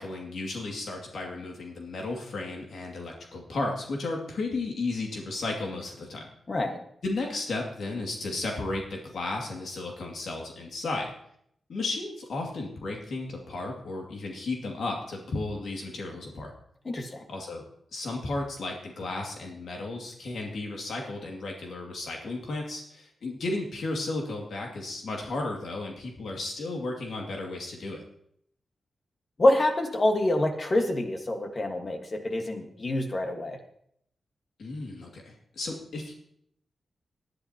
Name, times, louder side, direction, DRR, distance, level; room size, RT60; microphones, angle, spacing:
voice 1, 0.0-6.3 7.0-11.1 11.7-16.5 17.3-17.6 17.9-28.0 34.6-36.1, left 2 dB, 65° left, 0 dB, 2.4 m, -34 dB
voice 2, 6.5-6.8 16.8-17.2 29.4-33.6, left 1 dB, 30° left, 4 dB, 1.6 m, -26 dB
19.0 x 11.0 x 2.9 m, 0.70 s
wide cardioid pair, 155°, 0 cm